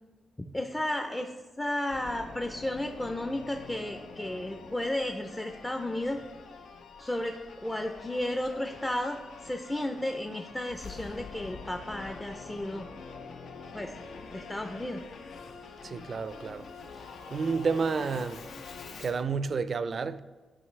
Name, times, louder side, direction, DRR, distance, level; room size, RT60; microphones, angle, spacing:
voice 1, 0.5-6.2 7.0-12.9 13.7-13.9 14.3-15.0, left 1 dB, 15° left, 0.4 m, -33 dB
Singing / Musical instrument, 1.9-19.3, left 4 dB, 80° left, 0.6 m, -46 dB
voice 2, 15.8-16.7 17.3-18.5 19.0-20.2, right 5 dB, 50° right, 0.4 m, -30 dB
11.0 x 5.3 x 3.2 m
cardioid pair, 110°, 0 cm